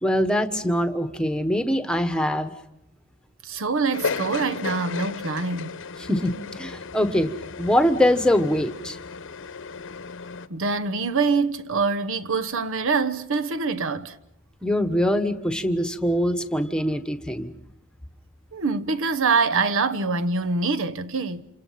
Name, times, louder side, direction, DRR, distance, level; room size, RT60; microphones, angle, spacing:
voice 1, 0.0-2.5 6.0-7.3 7.6-9.0 14.6-17.5, equal, 5° left, 1.2 m, -23 dB
voice 2, 3.4-5.8 10.5-14.2 18.5-21.4, right 4 dB, 65° right, 1.0 m, -25 dB
sound 1, 3.9-10.5, left 5 dB, 60° left, 1.0 m, -34 dB
28.0 x 28.0 x 5.8 m
head